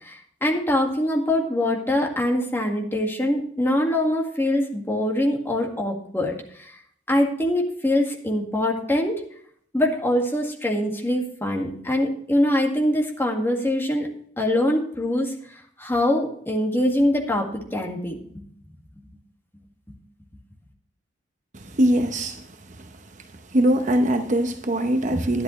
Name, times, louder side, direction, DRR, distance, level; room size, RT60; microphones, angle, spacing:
voice 1, 0.0-6.7 7.1-9.2 9.7-14.1 14.4-15.3 15.8-18.4, left 1 dB, 15° left, 1.9 m, -23 dB
voice 2, 21.5-22.9 23.5-25.4, right 1 dB, 45° right, 0.9 m, -22 dB
11.5 x 11.0 x 3.2 m
head